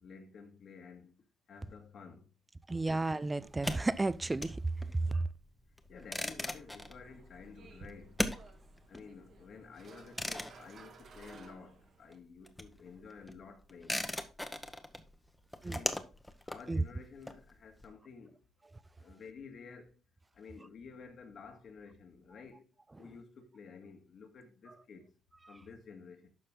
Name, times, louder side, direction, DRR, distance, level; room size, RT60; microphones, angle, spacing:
voice 1, 0.0-1.1 1.5-2.2 5.9-8.1 8.9-14.0 15.6-16.0 16.5-18.4 19.0-19.9 20.4-22.6 23.0-25.0 25.5-26.3, left 5 dB, 60° left, 1.9 m, -52 dB
voice 2, 2.7-4.6 5.1-5.2 15.6-15.8 16.7-16.8, right 2 dB, 20° right, 0.5 m, -32 dB
sound 1, 3.4-11.8 12.1-17.8, left 1 dB, 10° left, 1.1 m, -40 dB
sound 2, 6.4-12.2, right 4 dB, 60° right, 1.7 m, -57 dB
12.0 x 4.3 x 3.8 m
cardioid pair, 90°, 0 cm